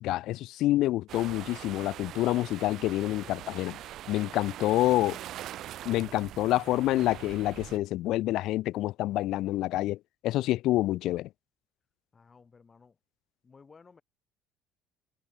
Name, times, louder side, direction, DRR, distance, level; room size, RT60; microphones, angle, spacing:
voice 1, 0.0-3.8 4.1-5.2 5.8-10.0 10.2-11.3, left 16 dB, 70° left, 0.3 m, -27 dB
sound 1, 1.1-7.8, right 13 dB, 60° right, 0.6 m, -43 dB
voice 2, 12.1-13.0 13.4-14.0, left 5 dB, 30° left, 3.5 m, -56 dB
supercardioid pair, 85°, 0 cm